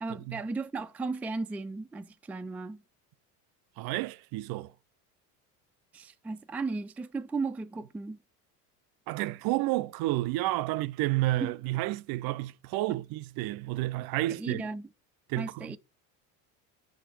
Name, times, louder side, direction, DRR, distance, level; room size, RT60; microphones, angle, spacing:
voice 1, 0.0-2.8 5.9-8.2 11.4-11.5 14.3-14.9 15.3-15.8, right 3 dB, 5° right, 0.3 m, -35 dB
voice 2, 3.8-4.7 9.1-14.6 15.3-15.8, right 18 dB, 55° right, 0.5 m, -30 dB
5.8 x 5.1 x 4.3 m
supercardioid pair, 85°, 43 cm